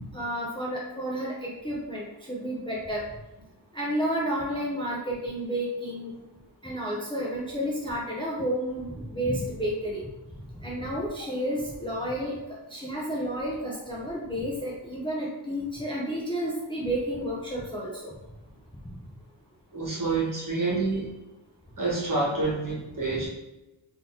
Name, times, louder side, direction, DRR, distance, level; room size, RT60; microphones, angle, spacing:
voice 1, 0.0-3.0 3.7-6.1 6.6-10.0 10.6-12.4 12.7-18.1, equal, 10° left, -5 dB, 0.6 m, -31 dB
voice 2, 19.7-21.1 21.8-23.3, right 3 dB, 40° right, -6 dB, 1.5 m, -27 dB
3.7 x 2.8 x 2.8 m, 0.98 s
wide cardioid pair, 110°, 48 cm